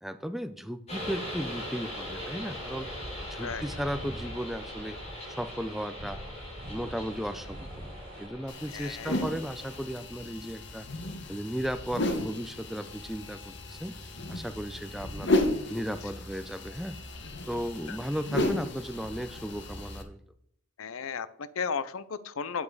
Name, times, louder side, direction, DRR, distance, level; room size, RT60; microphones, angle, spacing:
voice 1, 0.0-2.9 3.2-5.0 5.3-6.3 6.7-7.7 8.2-10.9 11.3-14.0 14.3-15.3 15.7-17.0 17.5-20.2, equal, ahead, 11 dB, 0.4 m, -35 dB
sound 1, 0.9-9.8, left 1 dB, 30° left, 3.6 m, -41 dB
sound 2, 2.0-8.3, right 1 dB, 40° right, 1.2 m, -44 dB
sound 3, 8.5-20.0, left 1 dB, 55° left, 1.2 m, -34 dB
voice 2, 8.7-9.2 17.9-18.0 20.8-22.6, left 6 dB, 70° left, 16 dB, 0.6 m, -35 dB
8.4 x 7.4 x 4.7 m, 0.72 s
head